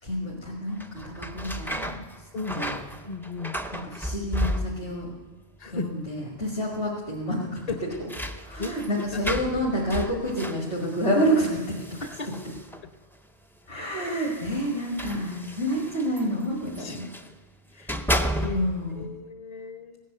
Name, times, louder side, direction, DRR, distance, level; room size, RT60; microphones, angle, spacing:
voice 1, 0.0-2.3 2.5-2.8 3.9-5.1 5.7-7.6 8.5-12.0 13.7-17.1 18.4-19.0, equal, 55° left, -4 dB, 2.4 m, -28 dB
sound 1, 0.7-5.1 5.4-6.1 6.4-6.5 7.5-13.0 13.8-17.3 17.7-18.9, equal, 5° left, 0.3 m, -34 dB
voice 2, 2.3-2.7 3.0-3.6 5.6-5.9 7.7-7.8 8.6-8.7 9.1-9.3 12.0-12.3 12.8-12.9 16.8-17.0 17.7-20.0, left 4 dB, 40° left, 8 dB, 0.9 m, -35 dB
16.5 x 10.0 x 6.7 m, 1.4 s
omnidirectional pair, 1.2 m